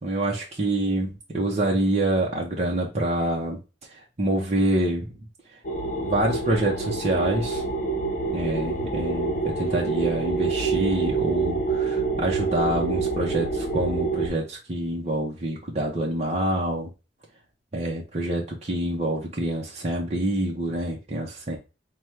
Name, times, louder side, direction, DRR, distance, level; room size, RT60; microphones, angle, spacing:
voice 1, 0.0-3.6 3.9-5.1 6.0-7.6 8.3-16.9 17.7-21.6, right 1 dB, 35° right, -2 dB, 0.7 m, -26 dB
sound 1, 5.6-14.3, right 4 dB, 45° left, 1.0 m, -27 dB
5.9 x 2.3 x 3.2 m, 0.30 s
head